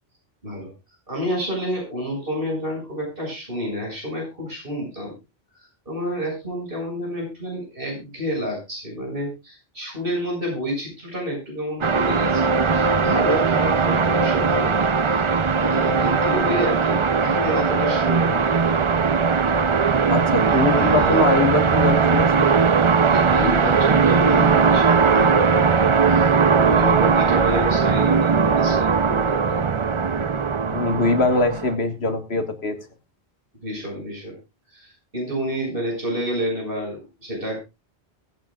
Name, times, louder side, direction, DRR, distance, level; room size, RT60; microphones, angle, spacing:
voice 1, 1.1-5.1 5.9-14.8 15.6-18.7 20.4-21.4 23.1-26.3 26.6-29.7 33.6-34.4 34.7-37.6, equal, 60° right, 0 dB, 6.9 m, -29 dB
sound 1, 11.8-31.7, right 5 dB, 35° right, 0.6 m, -19 dB
voice 2, 20.1-22.5 30.7-32.8, left 3 dB, 90° left, 8 dB, 1.9 m, -22 dB
23.0 x 9.1 x 2.4 m, 0.25 s
omnidirectional pair, 1.0 m